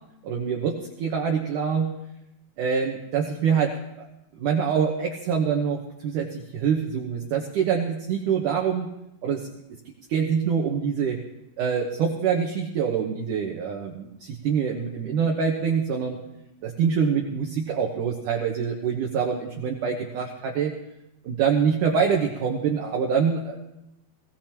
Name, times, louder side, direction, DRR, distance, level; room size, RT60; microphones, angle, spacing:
voice 1, 0.2-1.9 2.6-4.1 4.4-8.9 9.2-9.5 10.1-11.2 11.6-16.2 16.6-20.7 21.2-23.6, right 6 dB, 75° right, 1 dB, 1.9 m, -25 dB
22.0 x 18.0 x 3.0 m, 0.88 s
omnidirectional pair, 5.2 m